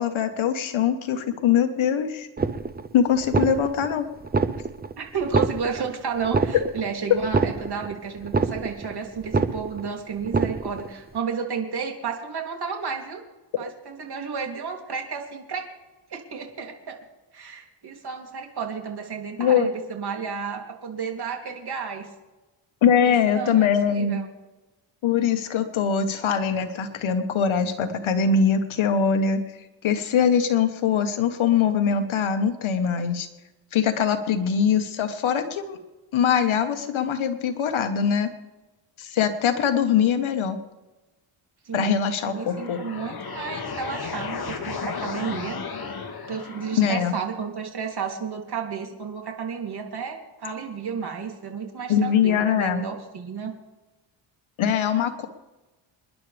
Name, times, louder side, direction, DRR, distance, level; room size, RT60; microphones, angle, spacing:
voice 1, 0.0-2.3 2.9-4.1 19.4-19.7 22.8-24.2 25.0-29.4 29.8-33.3 33.7-35.8 36.1-38.3 39.0-40.6 41.7-42.8 46.8-47.1 51.9-52.8 54.6-55.3, left 7 dB, 70° left, 7 dB, 1.4 m, -22 dB
sound 1, 2.4-2.9 3.2-3.9 4.2-4.9 5.2-5.9 6.2-6.9 7.2-7.9 8.2-8.9 9.2-9.9 10.2-10.9, right 4 dB, 20° right, 0.7 m, -25 dB
voice 2, 5.0-13.2 13.6-15.7 16.1-17.0 17.3-22.1 23.2-23.7 23.9-24.3 41.6-41.9 42.2-45.6 46.3-53.6, right 6 dB, 50° right, 1 dB, 3.2 m, -32 dB
sound 2, 42.2-47.1, left 5 dB, 50° left, 2.2 m, -34 dB
27.5 x 11.0 x 3.5 m, 1.1 s
cardioid pair, 105°, 49 cm